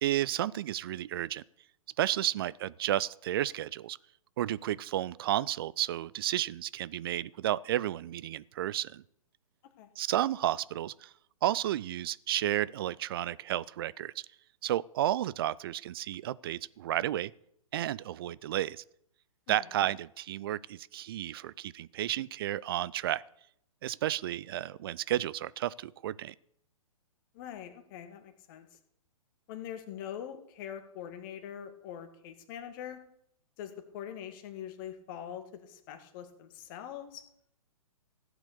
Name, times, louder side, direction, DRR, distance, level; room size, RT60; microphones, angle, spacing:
voice 1, 0.0-1.4 2.0-4.0 4.4-9.0 10.0-11.1 11.4-14.3 14.6-17.3 17.7-18.8 19.5-23.2 23.8-26.3, right 13 dB, 40° right, 21 dB, 0.4 m, -32 dB
voice 2, 27.3-28.7 29.5-33.0 33.6-37.2, left 9 dB, 35° left, 7 dB, 1.9 m, -43 dB
15.5 x 8.1 x 6.8 m, 0.73 s
figure-of-eight pair, 120°, 18 cm